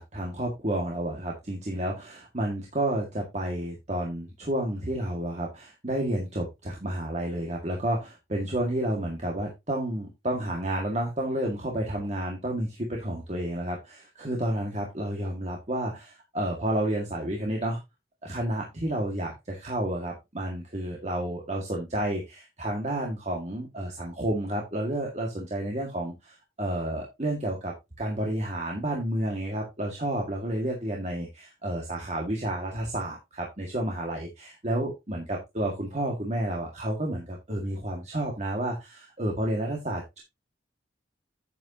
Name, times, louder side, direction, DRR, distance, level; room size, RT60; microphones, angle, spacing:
voice 1, 0.0-17.8 18.2-40.2, right 1 dB, 40° right, -1 dB, 1.9 m, -31 dB
9.2 x 8.3 x 2.8 m, 0.22 s
head